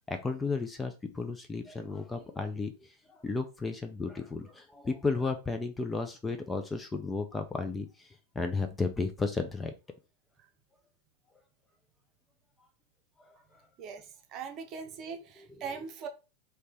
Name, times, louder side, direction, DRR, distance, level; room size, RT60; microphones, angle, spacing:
voice 1, 0.1-8.1 8.4-9.7 15.4-15.8, left 3 dB, 10° left, 0.5 m, -34 dB
voice 2, 14.3-16.1, right 6 dB, 35° right, 0.7 m, -40 dB
3.2 x 2.8 x 3.3 m
figure-of-eight pair, 90°, 0 cm